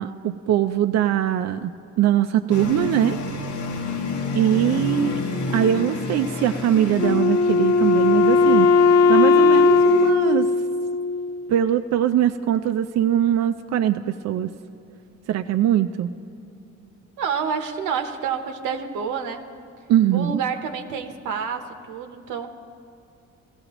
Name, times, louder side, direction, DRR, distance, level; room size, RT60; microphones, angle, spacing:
voice 1, 0.0-1.7 2.0-3.2 4.3-5.2 5.5-10.5 11.5-14.5 15.3-16.1 19.9-20.4, right 11 dB, 60° right, 8 dB, 0.4 m, -21 dB
sound 1, 2.5-10.1, left 3 dB, 75° left, 1.1 m, -30 dB
Wind instrument woodwind instrument, 7.0-11.5, left 4 dB, 50° left, 0.4 m, -17 dB
voice 2, 17.2-19.4 20.1-22.5, right 6 dB, 90° right, 6 dB, 0.9 m, -28 dB
18.0 x 14.5 x 3.0 m, 2.7 s
cardioid pair, 90°, 30 cm